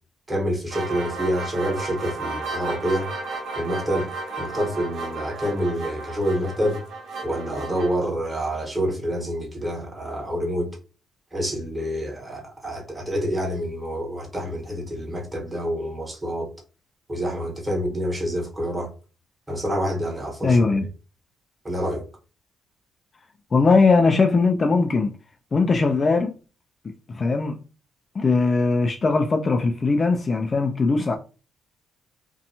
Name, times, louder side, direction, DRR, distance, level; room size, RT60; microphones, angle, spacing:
voice 1, 0.3-3.1 3.6-4.1 4.4-6.8 7.2-10.7 11.3-16.5 17.1-18.9 19.5-20.7 21.6-22.0, equal, 15° right, 1.2 m, -27 dB
sound 1, 0.7-7.9, right 3 dB, 65° right, 0.7 m, -33 dB
voice 2, 20.4-20.9 23.5-25.1 25.5-26.4 26.8-27.6 28.1-31.2, left 3 dB, 35° left, 0.3 m, -20 dB
2.6 x 2.2 x 2.8 m
cardioid pair, 90°, 0 cm